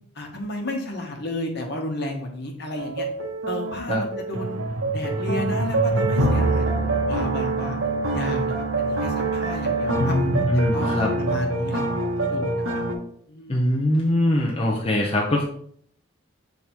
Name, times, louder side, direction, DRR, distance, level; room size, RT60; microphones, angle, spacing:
voice 1, 0.1-3.1 3.5-4.6 4.9-6.7 7.0-7.8 8.1-10.1 10.7-10.9 11.2-12.8 13.3-13.6, left 1 dB, 55° left, 2 dB, 1.2 m, -32 dB
sound 1, 2.8-12.9, right 2 dB, 80° right, 1.0 m, -25 dB
voice 2, 10.0-11.1 13.5-15.4, left 1 dB, 30° left, -2 dB, 0.6 m, -22 dB
6.2 x 3.5 x 4.4 m, 0.63 s
head